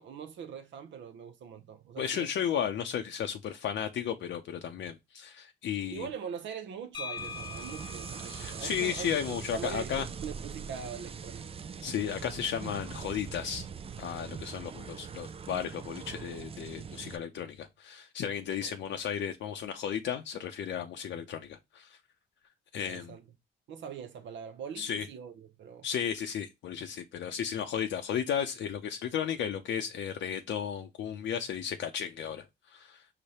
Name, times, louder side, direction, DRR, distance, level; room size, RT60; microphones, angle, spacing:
voice 1, 0.0-2.3 5.9-9.9 10.2-11.5 18.6-18.8 22.9-23.2 23.7-25.9, right 7 dB, 70° right, 0.6 m, -42 dB
voice 2, 2.0-6.1 8.3-10.1 11.8-13.7 14.0-22.0 22.7-23.1 24.8-25.1 25.8-33.0, left 8 dB, 70° left, 0.6 m, -34 dB
sound 1, 6.9-10.7, left 5 dB, 25° left, 0.9 m, -45 dB
sound 2, 7.2-17.2, right 6 dB, 30° right, 0.4 m, -42 dB
4.9 x 2.1 x 4.1 m
cardioid pair, 90°, 20 cm